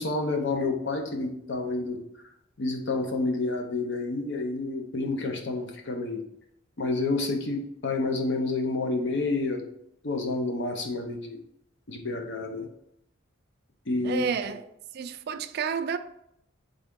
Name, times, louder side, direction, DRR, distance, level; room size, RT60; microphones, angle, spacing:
voice 1, 0.0-2.0 2.6-6.2 6.8-9.6 10.0-11.4 11.9-12.7 13.9-14.3, left 3 dB, 60° left, 0.7 m, -29 dB
voice 2, 14.0-14.6 14.9-16.0, right 6 dB, 50° right, 0.3 m, -30 dB
3.8 x 3.5 x 3.6 m
head